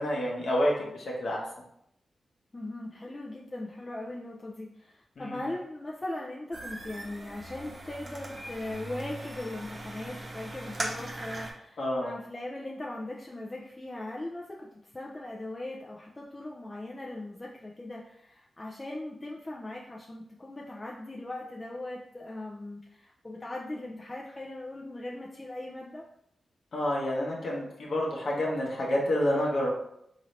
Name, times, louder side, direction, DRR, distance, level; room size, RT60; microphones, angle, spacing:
voice 1, 0.0-1.4 5.2-5.5 11.8-12.1 26.7-29.7, left 1 dB, 70° left, -2 dB, 1.0 m, -28 dB
voice 2, 2.5-26.1, left 1 dB, 30° left, -3 dB, 0.5 m, -39 dB
sound 1, 6.5-11.5, right 1 dB, 40° right, 0.9 m, -39 dB
3.8 x 2.7 x 3.1 m, 0.76 s
cardioid pair, 45°, 0 cm